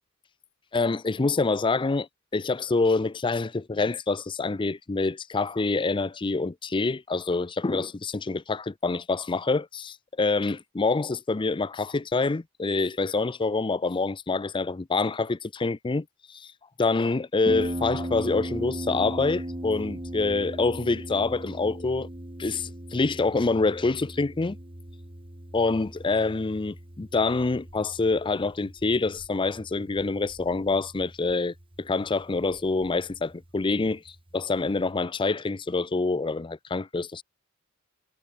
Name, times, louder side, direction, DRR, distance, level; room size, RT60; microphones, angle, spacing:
voice 1, 0.7-2.1 2.3-16.5 16.8-22.1 22.4-24.6 25.5-34.0 34.3-37.2, left 3 dB, 25° left, 0.5 m, -26 dB
Harp, 17.5-34.9, right 1 dB, 25° right, 2.3 m, -39 dB
head